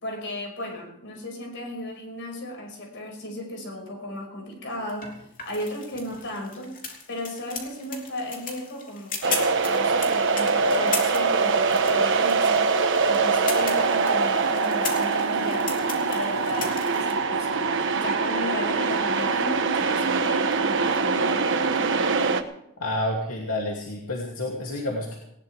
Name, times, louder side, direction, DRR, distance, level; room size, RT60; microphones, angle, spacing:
voice 1, 0.0-5.1 5.4-6.7 7.1-15.7 16.1-21.8, left 1 dB, 55° left, 2 dB, 5.6 m, -35 dB
sound 1, 4.9-17.1, left 5 dB, 40° left, 3.3 m, -37 dB
sound 2, 9.2-22.4, right 4 dB, 60° right, 1.3 m, -23 dB
voice 2, 22.8-25.2, left 1 dB, 75° left, -1 dB, 2.8 m, -29 dB
19.5 x 18.5 x 3.5 m, 0.76 s
head